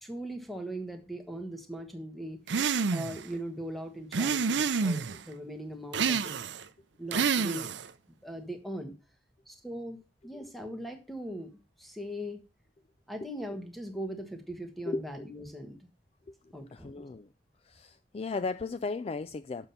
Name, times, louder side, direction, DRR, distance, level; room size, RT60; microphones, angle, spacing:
voice 1, 0.0-2.4 2.9-6.4 7.0-7.7 8.2-8.9 9.5-11.5 11.8-12.4 13.1-15.8 16.5-17.0, equal, ahead, 1.2 m, -40 dB
sound 1, 2.5-3.2 4.1-5.2 5.9-6.6 7.1-7.9, right 5 dB, 65° right, 0.6 m, -28 dB
voice 2, 4.8-5.2 10.3-10.5 14.9-15.1 16.3-17.3 17.6-19.7, left 3 dB, 30° left, 0.3 m, -36 dB
7.0 x 5.6 x 5.6 m
head